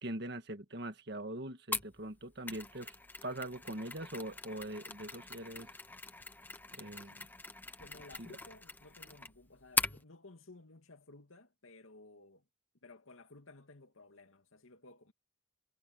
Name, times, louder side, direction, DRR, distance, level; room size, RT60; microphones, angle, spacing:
voice 1, 0.0-2.9 3.2-5.7 6.7-7.3 8.2-8.3, right 1 dB, 55° right, 1.8 m, -42 dB
Mechanisms, 1.7-10.0, left 3 dB, 10° left, 0.9 m, -41 dB
voice 2, 6.9-7.2 7.8-12.4 12.8-15.1, left 2 dB, 85° left, 2.4 m, -56 dB
head